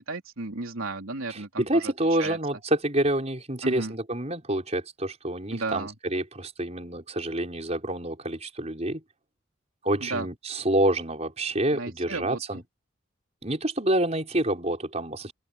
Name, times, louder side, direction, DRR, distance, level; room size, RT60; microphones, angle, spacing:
voice 1, 0.0-1.9 2.2-2.4 3.6-3.9 5.5-5.9 10.0-10.3 11.7-12.6, right 3 dB, 80° right, 3.2 m, -34 dB
voice 2, 1.3-9.0 9.8-12.6 13.4-15.3, right 1 dB, 30° right, 5.3 m, -27 dB
open air
head